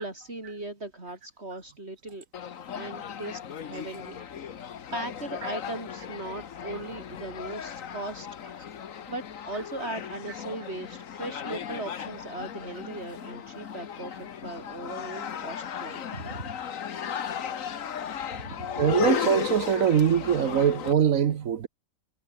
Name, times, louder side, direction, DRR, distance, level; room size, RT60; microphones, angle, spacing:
voice 1, 0.0-2.2 2.7-4.5 4.9-8.3 9.1-16.6 18.4-18.8, right 2 dB, 50° right, 5.6 m, -38 dB
sound 1, 2.3-20.9, left 8 dB, 75° left, 1.5 m, -36 dB
voice 2, 18.8-21.7, right 8 dB, 75° right, 1.4 m, -23 dB
omnidirectional pair, 1.4 m